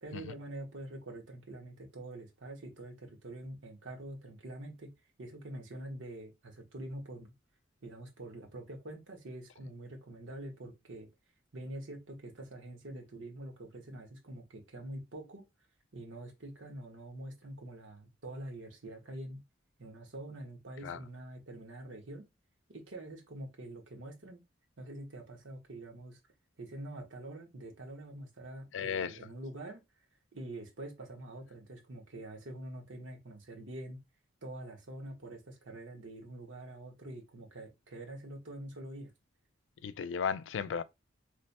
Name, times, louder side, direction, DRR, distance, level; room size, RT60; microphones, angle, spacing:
voice 1, 0.0-4.9 5.2-7.3 7.8-11.1 11.5-15.4 15.9-19.4 19.8-22.3 22.7-24.4 24.8-26.2 26.6-29.8 30.3-34.0 34.4-39.1, right 1 dB, 90° right, 1.1 m, -45 dB
voice 2, 28.7-29.2 39.8-40.8, left 6 dB, 80° left, 0.4 m, -35 dB
3.1 x 2.2 x 4.1 m
head